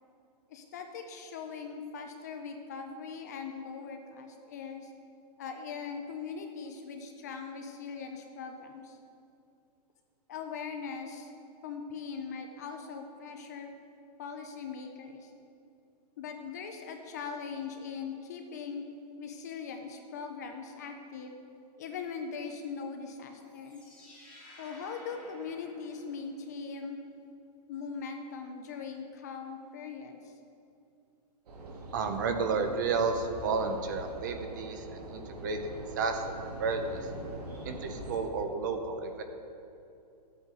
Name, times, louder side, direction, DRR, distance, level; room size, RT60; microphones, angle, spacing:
voice 1, 0.5-4.9 5.4-9.0 10.3-11.3 11.6-13.7 14.2-15.3 16.2-18.8 19.2-21.4 21.8-23.8 24.6-27.0 27.7-30.3, left 5 dB, 25° left, 5 dB, 0.4 m, -40 dB
sound 1, 23.4-26.5, left 1 dB, 5° left, 1.6 m, -54 dB
sound 2, 31.5-38.2, right 1 dB, 65° right, 1.8 m, -43 dB
voice 2, 31.9-37.0 37.6-39.2, right 4 dB, 30° right, 6 dB, 0.5 m, -32 dB
12.5 x 8.3 x 3.7 m, 2.6 s
hypercardioid pair, 175°, 21 cm